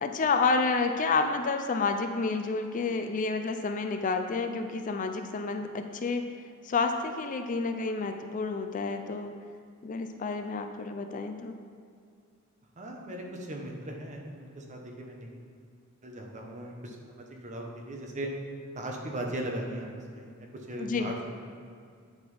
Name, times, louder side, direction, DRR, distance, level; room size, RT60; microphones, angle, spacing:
voice 1, 0.0-6.3 6.6-9.4 9.8-11.6 20.8-21.2, left 4 dB, 40° left, 6 dB, 0.4 m, -29 dB
voice 2, 12.8-15.3 16.0-18.3 18.7-21.3, right 1 dB, 35° right, 0 dB, 1.0 m, -38 dB
9.1 x 4.0 x 5.4 m, 2.2 s
head